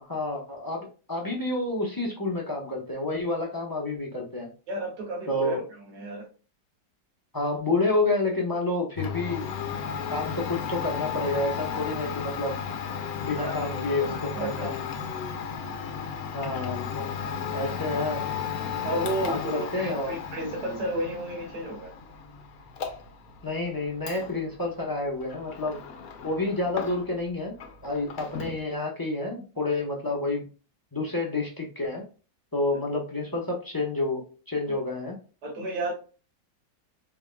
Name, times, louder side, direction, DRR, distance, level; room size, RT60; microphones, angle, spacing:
voice 1, 0.1-4.5 5.3-5.6 7.3-9.5 10.1-12.6 13.2-14.8 16.3-17.1 17.5-18.2 19.3-20.1 23.4-25.8 26.2-27.5 27.8-30.5 30.9-32.0 32.5-35.2, left 2 dB, 20° left, -1 dB, 0.6 m, -29 dB
voice 2, 4.7-6.3 13.4-14.7 15.6-15.8 18.8-21.9 34.7-34.8 35.4-35.9, right 1 dB, 65° right, -2 dB, 2.0 m, -33 dB
Domestic sounds home sounds, 9.0-27.3 27.6-28.6, left 7 dB, 60° left, 1.1 m, -35 dB
4.8 x 3.6 x 2.2 m, 0.35 s
omnidirectional pair, 2.1 m